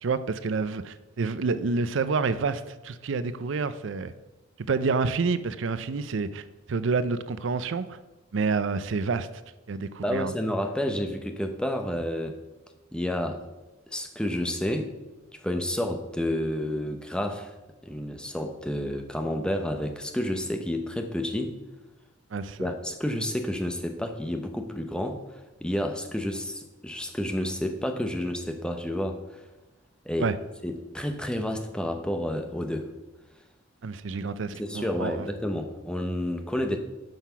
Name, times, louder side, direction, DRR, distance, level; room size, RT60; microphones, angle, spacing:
voice 1, 0.0-4.1 4.6-8.0 8.3-9.3 9.7-10.3 22.3-22.7 30.2-30.4 33.8-35.3, right 4 dB, 65° right, 14 dB, 0.5 m, -28 dB
voice 2, 10.0-12.4 12.9-13.4 13.9-14.9 15.4-17.5 17.8-21.5 22.6-25.2 25.6-29.4 30.0-30.3 30.6-32.9 34.5-36.8, left 1 dB, 5° left, 5 dB, 0.8 m, -30 dB
10.5 x 5.8 x 5.7 m, 1.1 s
head